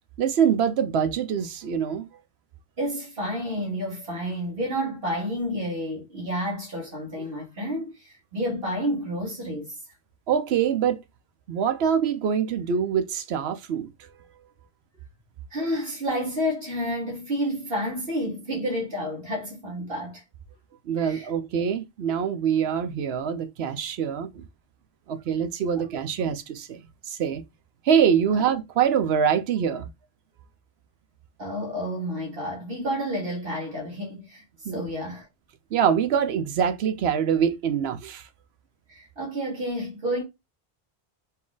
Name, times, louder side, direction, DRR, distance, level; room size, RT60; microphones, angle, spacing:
voice 1, 0.2-2.1 10.3-11.0 11.5-13.9 20.9-24.4 25.1-27.4 27.8-29.9 34.6-34.8 35.7-38.3, right 8 dB, 80° right, 0.9 m, -24 dB
voice 2, 2.8-9.8 15.5-20.2 21.0-21.3 25.7-25.8 31.4-35.3 38.9-40.2, equal, 65° right, 1.4 m, -30 dB
4.2 x 2.4 x 3.8 m
omnidirectional pair, 1.0 m